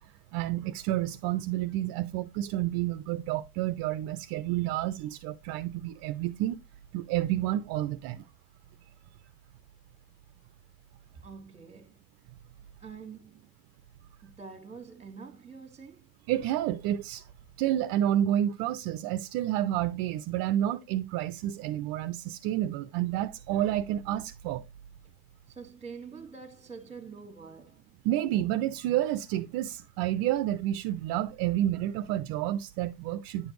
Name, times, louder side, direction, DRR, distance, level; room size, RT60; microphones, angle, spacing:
voice 1, 0.3-6.6 6.9-8.2 16.3-17.2 17.6-24.6 28.0-33.5, right 13 dB, 50° right, 0.7 m, -29 dB
voice 2, 11.1-12.0 12.8-13.5 14.2-16.1 25.5-27.8, right 5 dB, 15° right, 1.7 m, -46 dB
10.0 x 5.1 x 3.1 m
supercardioid pair, 120°, 46 cm